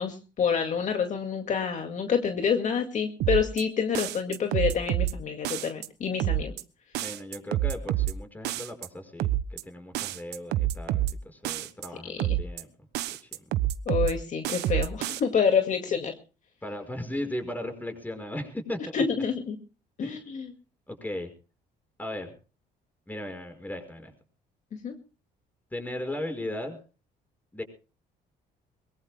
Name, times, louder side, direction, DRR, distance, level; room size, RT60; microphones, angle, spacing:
voice 1, 0.0-6.5 12.0-12.2 13.9-16.1 18.9-19.6 20.0-20.5 24.8-24.9, left 6 dB, 45° left, 6 dB, 2.1 m, -27 dB
sound 1, 3.2-3.6 4.0-5.1 5.5-5.9 6.2-6.6 7.0-8.1 8.4-8.9 9.2-9.6 10.0-11.1 11.5-11.9 12.2-12.6 12.9-14.1 14.4-15.2, right 14 dB, 85° right, 1.2 m, -28 dB
voice 2, 7.0-12.7 13.2-13.3 16.6-19.0 20.0-20.2 20.9-21.3 22.0-22.3 23.1-24.1 25.7-26.8 27.5-27.6, left 1 dB, 10° left, 6 dB, 5.5 m, -37 dB
23.0 x 22.0 x 2.2 m, 0.35 s
cardioid pair, 110°, 17 cm